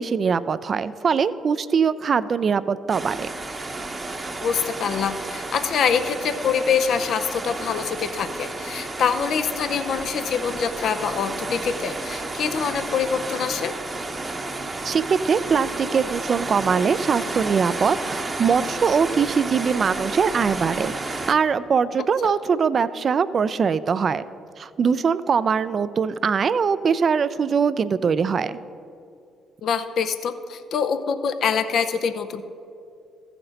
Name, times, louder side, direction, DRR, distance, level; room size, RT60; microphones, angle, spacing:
voice 1, 0.0-3.3 14.8-24.2 24.6-28.6, right 6 dB, 50° right, 15 dB, 0.4 m, -22 dB
sound 1, 2.9-21.3, right 2 dB, 30° right, 0.8 m, -32 dB
voice 2, 4.4-13.7 22.2-22.3 29.6-32.4, left 6 dB, 65° left, 9 dB, 0.5 m, -25 dB
15.0 x 5.9 x 3.9 m, 2.5 s
hypercardioid pair, 50°, 0 cm